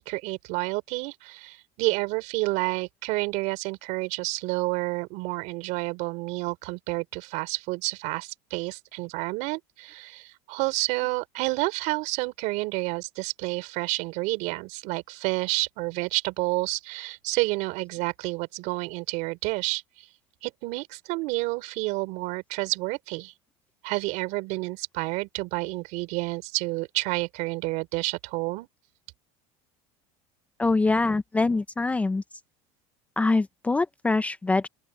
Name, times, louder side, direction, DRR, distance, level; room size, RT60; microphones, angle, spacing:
voice 1, 0.0-19.8 20.4-23.3 23.8-28.7, right 24 dB, 65° right, 4.7 m, -29 dB
voice 2, 30.6-32.2 33.2-34.7, left 3 dB, 10° left, 0.5 m, -24 dB
open air
cardioid pair, 150°, 14 cm